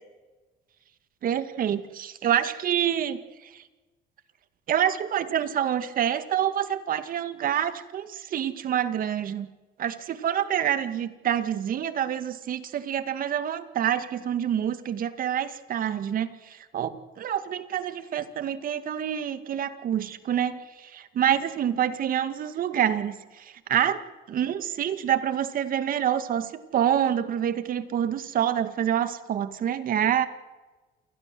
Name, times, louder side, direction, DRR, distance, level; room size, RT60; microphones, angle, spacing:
voice 1, 1.2-3.2 4.7-9.5 9.8-24.0 24.3-30.3, right 9 dB, 55° right, 11 dB, 2.1 m, -27 dB
28.5 x 20.5 x 7.8 m, 1.2 s
cardioid pair, 110°, 17 cm